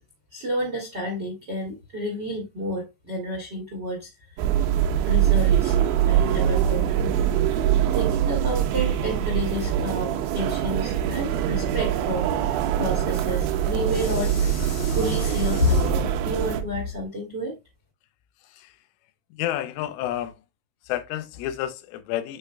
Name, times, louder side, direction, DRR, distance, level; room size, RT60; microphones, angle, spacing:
voice 1, 0.3-4.5 5.0-5.8 6.0-6.9 7.9-17.6, equal, 55° right, 1.2 m, -31 dB
sound 1, 4.4-16.6, right 10 dB, 85° right, 2.9 m, -23 dB
sound 2, 10.1-17.1, left 4 dB, 65° left, 1.5 m, -31 dB
voice 2, 18.4-18.8 19.3-20.4 20.8-22.4, left 13 dB, 85° left, 3.3 m, -30 dB
9.0 x 4.9 x 2.3 m
omnidirectional pair, 5.6 m